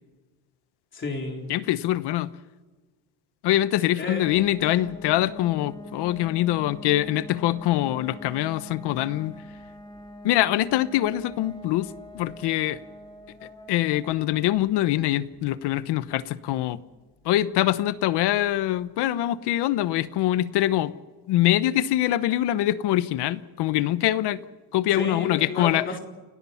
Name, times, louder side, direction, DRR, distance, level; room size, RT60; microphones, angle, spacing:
voice 1, 0.9-1.5 3.9-4.2 4.6-4.7 25.0-26.0, left 3 dB, 30° left, 1 dB, 3.9 m, -31 dB
voice 2, 1.5-2.3 3.4-9.3 10.2-12.8 13.7-16.8 17.2-20.9 21.3-24.4 24.7-25.9, left 14 dB, 75° left, 14 dB, 1.1 m, -24 dB
sound 1, 4.2-18.8, equal, 10° left, 3.5 m, -45 dB
29.5 x 18.5 x 5.8 m, 1.3 s
cardioid pair, 150°, 41 cm